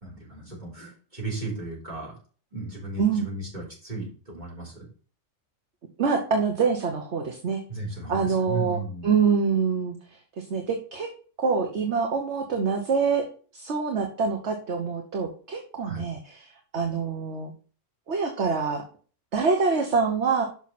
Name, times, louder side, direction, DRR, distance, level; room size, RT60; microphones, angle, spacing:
voice 1, 0.0-2.1 2.5-4.9 7.7-9.1 15.8-16.0, right 3 dB, 35° right, -5 dB, 4.1 m, -35 dB
voice 2, 6.0-7.6 8.1-11.1 11.4-13.2 13.5-17.5 18.1-18.8 19.3-20.5, right 5 dB, 60° right, 3 dB, 1.4 m, -25 dB
6.3 x 6.3 x 4.2 m, 0.40 s
omnidirectional pair, 1.3 m